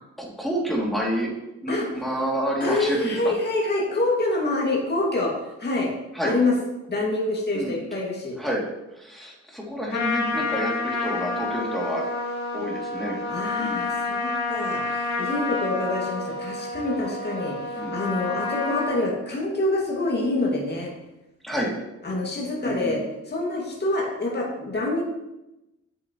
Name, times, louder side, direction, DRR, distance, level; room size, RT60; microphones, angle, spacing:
voice 1, 0.2-1.3 1.6-3.3 6.1-6.3 7.5-7.8 8.4-8.6 9.0-12.1 12.5-13.2 13.6-13.9 17.8-17.9 21.4-21.7 22.6-23.0, equal, ahead, -3 dB, 2.7 m, -28 dB
voice 2, 2.6-5.3 5.6-5.9 6.2-6.5 6.9-8.4 13.3-20.9 22.0-23.0 23.3-25.0, left 2 dB, 35° left, -3 dB, 2.2 m, -26 dB
Trumpet, 9.9-19.0, left 3 dB, 65° left, 2.4 m, -29 dB
8.1 x 7.7 x 3.1 m, 0.95 s
cardioid pair, 65°, 30 cm